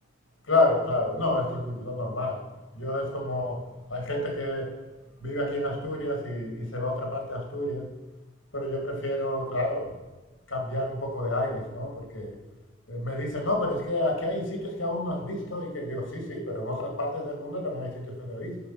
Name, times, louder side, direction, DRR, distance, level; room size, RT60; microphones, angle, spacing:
voice 1, 0.5-2.4 2.7-3.6 3.9-4.7 5.2-7.9 8.5-9.9 10.5-12.4 12.9-18.6, left 1 dB, 85° left, 2 dB, 2.7 m, -29 dB
9.6 x 5.6 x 5.9 m, 1.1 s
head